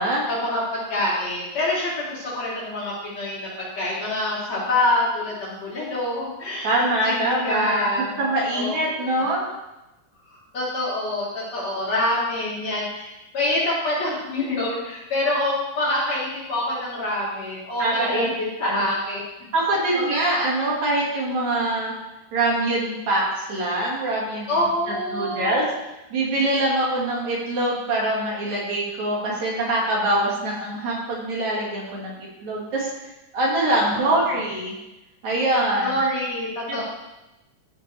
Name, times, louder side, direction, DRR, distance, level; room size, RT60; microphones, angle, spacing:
voice 1, 0.3-3.5 3.8-9.1 10.3-19.2 24.5-25.6 33.7-34.3 35.8-36.8, left 1 dB, 50° left, -8 dB, 4.6 m, -26 dB
voice 2, 6.6-9.5 17.8-18.3 18.6-18.9 19.5-21.9 22.3-24.5 25.1-25.6 26.1-32.9 33.3-34.8 35.2-35.9 36.7-36.8, right 1 dB, 60° right, -4 dB, 3.3 m, -24 dB
13.5 x 8.0 x 3.4 m, 0.98 s
omnidirectional pair, 3.8 m